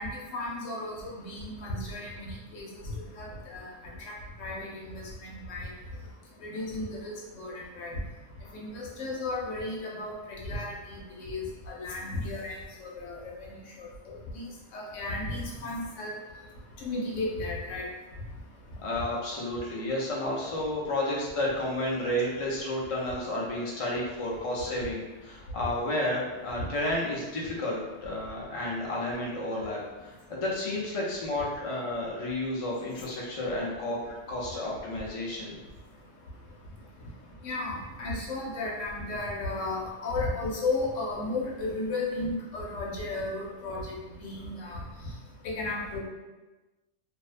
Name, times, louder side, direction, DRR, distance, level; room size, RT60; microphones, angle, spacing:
voice 1, 0.0-2.7 3.0-3.7 4.0-5.7 6.4-8.0 8.5-13.5 13.8-14.4 14.7-16.1 16.8-17.9 37.4-43.9 44.2-44.8 45.4-46.0, left 2 dB, 75° left, -3 dB, 1.0 m, -34 dB
voice 2, 18.8-34.0 34.3-35.6, left 1 dB, 55° left, -4 dB, 0.3 m, -31 dB
2.5 x 2.1 x 2.4 m, 1.2 s
omnidirectional pair, 1.3 m